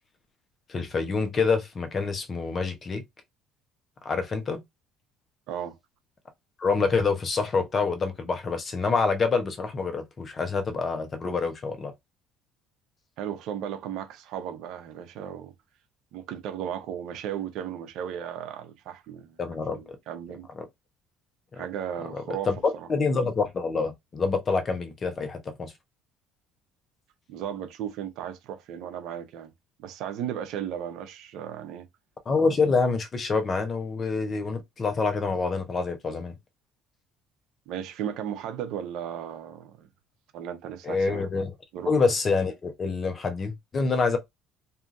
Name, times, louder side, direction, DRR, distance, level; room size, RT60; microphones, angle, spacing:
voice 1, 0.7-3.0 4.0-4.6 6.6-11.9 19.4-19.8 21.5-21.7 22.1-22.5 22.9-25.7 32.3-36.3 40.8-41.5 41.9-44.2, left 4 dB, 40° left, 0.8 m, -26 dB
voice 2, 5.5-5.8 13.2-15.5 16.1-19.4 19.7-20.5 21.6-22.9 27.3-29.5 29.8-31.9 37.7-39.9 40.3-41.3 41.7-41.9, right 9 dB, 70° right, 0.6 m, -35 dB
2.7 x 2.5 x 2.5 m
supercardioid pair, 70°, 0 cm